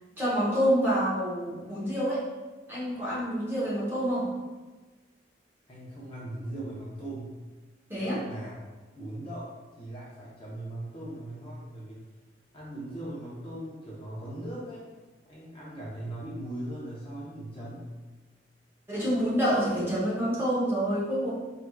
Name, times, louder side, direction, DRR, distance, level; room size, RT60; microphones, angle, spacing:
voice 1, 0.2-2.2 2.7-4.3 7.9-8.2 18.9-21.3, equal, 10° right, -8 dB, 0.8 m, -27 dB
voice 2, 5.7-7.4 8.0-8.5 9.0-12.0 12.5-14.8 15.2-17.9, right 1 dB, 30° left, -7 dB, 0.7 m, -39 dB
4.4 x 2.5 x 2.3 m, 1.3 s
head